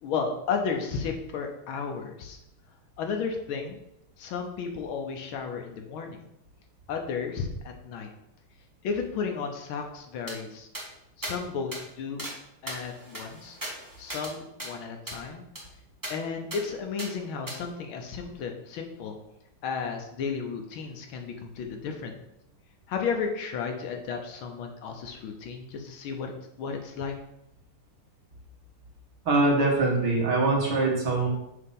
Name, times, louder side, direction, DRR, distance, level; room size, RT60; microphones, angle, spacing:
voice 1, 0.0-2.4 3.0-3.8 4.2-6.2 6.9-8.1 8.8-10.7 11.2-12.3 12.6-13.6 14.0-15.4 16.1-19.2 19.6-22.2 22.9-27.1, left 5 dB, 75° left, 3 dB, 1.4 m, -33 dB
sound 1, 10.3-10.4 10.7-10.9 11.2-11.4 11.7-11.8 12.2-12.4 12.7-14.3 14.6-14.7 15.1-15.2 15.6-15.7 16.0-16.1 16.5-16.6 17.0-17.1 17.5-17.6, right 1 dB, 15° right, 0.7 m, -37 dB
voice 2, 29.3-31.3, right 3 dB, 55° right, -3 dB, 1.9 m, -23 dB
6.6 x 2.9 x 5.3 m, 0.84 s
omnidirectional pair, 2.4 m